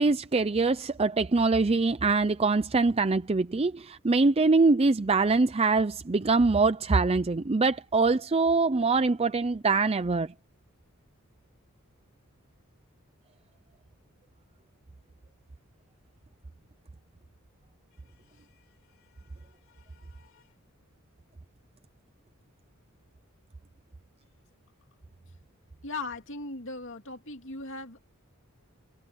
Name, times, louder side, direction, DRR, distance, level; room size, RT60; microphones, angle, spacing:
voice 1, 0.0-10.3, right 3 dB, 30° right, 0.5 m, -24 dB
voice 2, 18.3-18.7 19.0-20.5 25.8-28.0, left 3 dB, 65° left, 2.5 m, -41 dB
head